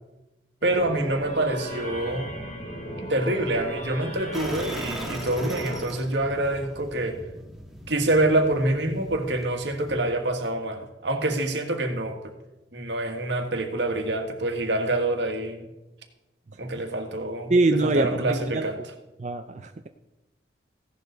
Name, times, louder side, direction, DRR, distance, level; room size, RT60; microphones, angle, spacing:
sound 1, 0.6-5.8, right 1 dB, 40° left, 3.1 m, -36 dB
voice 1, 0.6-2.3 3.1-7.2 7.9-12.3 12.7-15.7 16.6-17.5 17.8-18.8, right 1 dB, 80° right, 5 dB, 1.8 m, -26 dB
sound 2, 4.3-10.1, equal, ahead, 1.7 m, -40 dB
voice 2, 17.5-18.7 19.2-19.9, right 2 dB, 40° right, 6 dB, 0.5 m, -24 dB
16.0 x 11.0 x 4.0 m, 0.97 s
head